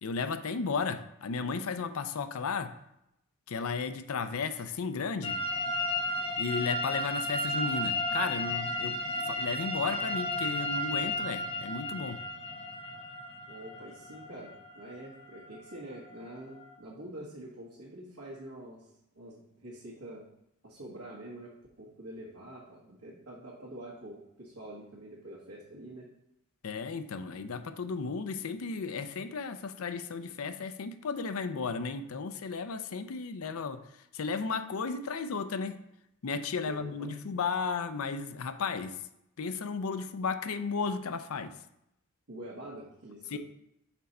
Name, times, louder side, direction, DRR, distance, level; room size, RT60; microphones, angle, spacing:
voice 1, 0.0-2.7 3.5-5.4 6.4-12.2 26.6-33.8 34.1-35.8 36.2-39.0 39.4-41.5 43.3-43.4, left 5 dB, 65° left, 10 dB, 0.5 m, -34 dB
sound 1, 5.2-16.8, left 1 dB, 25° left, 0.9 m, -34 dB
voice 2, 13.5-18.9 19.1-20.2 20.6-26.1 36.6-37.1 42.3-43.4, right 1 dB, 75° right, -7 dB, 1.7 m, -46 dB
5.9 x 4.3 x 5.4 m, 0.82 s
head